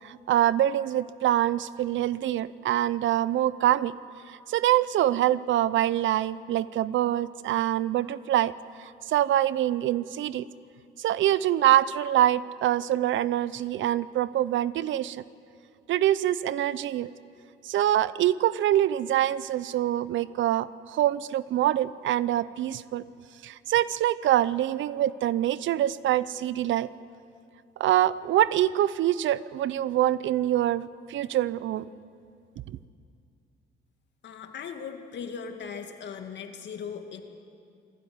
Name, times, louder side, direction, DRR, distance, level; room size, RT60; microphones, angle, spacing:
voice 1, 0.0-3.9 4.3-8.5 8.8-10.5 11.0-15.2 15.9-17.1 17.6-23.0 23.4-26.9 27.8-31.9 32.7-32.8, right 12 dB, 75° right, 18 dB, 0.7 m, -25 dB
voice 2, 34.2-37.2, left 6 dB, 65° left, 5 dB, 2.3 m, -38 dB
22.0 x 15.5 x 9.7 m, 2.4 s
cardioid pair, 90°, 20 cm